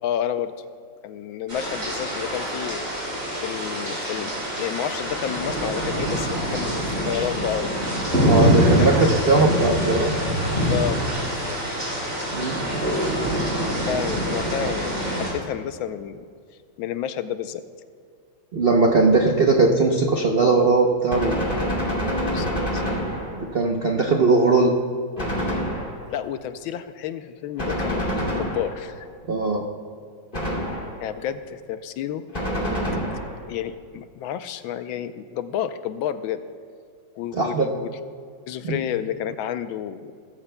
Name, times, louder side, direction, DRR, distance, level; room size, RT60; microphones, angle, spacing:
voice 1, 0.0-0.5 1.0-2.8 3.4-4.3 4.6-7.7 8.6-8.9 10.7-11.6 13.6-16.3 16.8-17.6 22.2-22.8 26.1-29.1 31.0-32.3 33.5-36.4 37.2-37.9 38.5-40.1, left 9 dB, 80° left, 11 dB, 1.4 m, -30 dB
sound 1, 1.5-15.3, equal, 40° right, 4.3 m, -24 dB
voice 2, 8.2-10.1 12.3-12.6 18.5-21.4 23.4-24.8 29.3-29.6 37.3-37.7 38.7-38.8, right 3 dB, 70° right, 1 dB, 0.5 m, -19 dB
Gunshot gunfire, 21.1-23.6 25.2-26.2 27.6-29.0 30.3-31.1 32.3-33.5, equal, 25° left, 2.5 m, -27 dB
21.5 x 13.5 x 2.2 m, 2.1 s
omnidirectional pair, 2.2 m